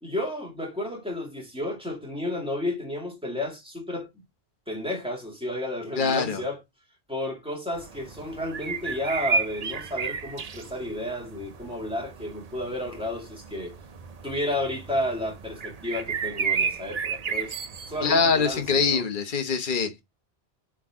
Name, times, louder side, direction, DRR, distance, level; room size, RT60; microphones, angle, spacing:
voice 1, 0.0-4.1 4.7-6.6 7.1-13.7 14.2-17.6 17.9-19.0, left 1 dB, 5° right, 2.4 m, -32 dB
voice 2, 6.0-6.4 18.0-20.0, left 5 dB, 50° left, 1.2 m, -24 dB
sound 1, 7.7-19.0, right 5 dB, 45° right, 0.6 m, -33 dB
9.6 x 3.8 x 3.7 m
omnidirectional pair, 1.1 m